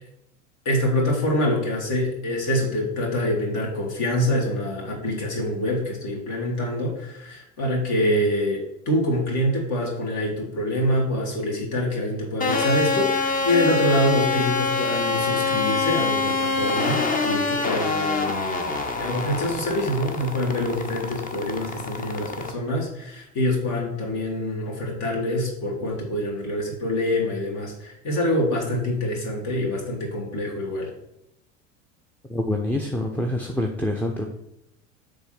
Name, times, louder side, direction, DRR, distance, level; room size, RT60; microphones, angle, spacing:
voice 1, 0.6-30.9, left 1 dB, 50° left, -1 dB, 2.7 m, -25 dB
sound 1, 12.4-22.5, left 4 dB, 20° left, 1.0 m, -25 dB
voice 2, 32.3-34.3, left 1 dB, 5° left, 1 dB, 0.6 m, -26 dB
6.9 x 3.7 x 5.9 m, 0.80 s
figure-of-eight pair, 75°, 38 cm